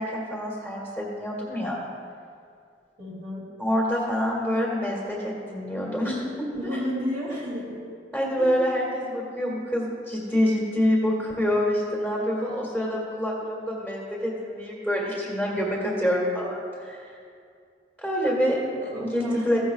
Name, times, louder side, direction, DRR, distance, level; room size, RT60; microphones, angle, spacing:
voice 1, 0.0-1.8 3.6-6.4 6.7-6.8 8.1-17.1 18.0-19.6, equal, 5° right, -4 dB, 2.0 m, -26 dB
voice 2, 3.0-3.5 6.6-7.8 8.4-8.5 18.7-19.6, equal, 50° right, -5 dB, 2.5 m, -32 dB
15.5 x 11.5 x 2.3 m, 2.3 s
head